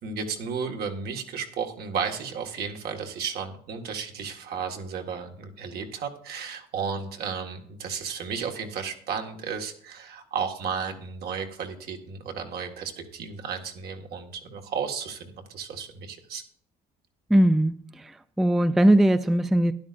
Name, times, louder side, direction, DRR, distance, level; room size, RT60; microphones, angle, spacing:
voice 1, 0.0-16.4, right 6 dB, 65° right, 3 dB, 1.6 m, -33 dB
voice 2, 17.3-18.1 18.4-19.7, right 1 dB, ahead, 12 dB, 0.3 m, -20 dB
12.5 x 10.5 x 2.5 m, 0.62 s
cardioid pair, 110°, 17 cm